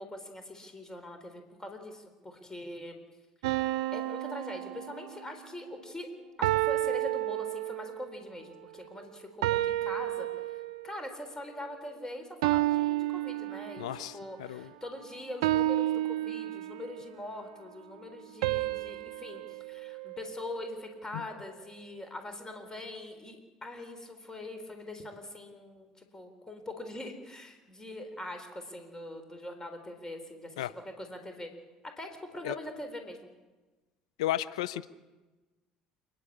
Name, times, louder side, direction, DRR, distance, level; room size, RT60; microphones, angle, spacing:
voice 1, 0.0-3.0 3.6-6.1 6.4-30.7 31.0-31.5 32.0-33.2, left 1 dB, 20° left, 6 dB, 3.9 m, -43 dB
sound 1, 3.4-5.4 6.4-8.1 9.4-11.0 12.4-14.1 15.4-17.0 18.4-20.8, right 16 dB, 75° right, 0.6 m, -31 dB
voice 2, 13.8-14.1 14.4-14.7 21.1-21.2 30.6-30.7 32.4-32.6 34.2-34.9, left 13 dB, 80° left, 15 dB, 0.6 m, -33 dB
28.5 x 11.0 x 8.6 m, 1.2 s
hypercardioid pair, 65°, 3 cm